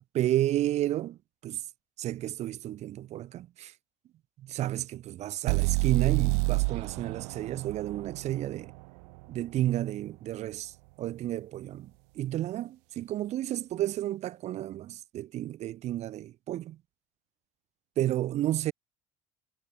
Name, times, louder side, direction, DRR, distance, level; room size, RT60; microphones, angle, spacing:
voice 1, 0.0-1.6 2.0-3.7 4.4-8.7 9.3-16.8 18.0-18.7, right 13 dB, 50° right, 1.1 m, -31 dB
sound 1, 5.5-9.4, right 36 dB, 85° right, 0.4 m, -29 dB
supercardioid pair, 115°, 14 cm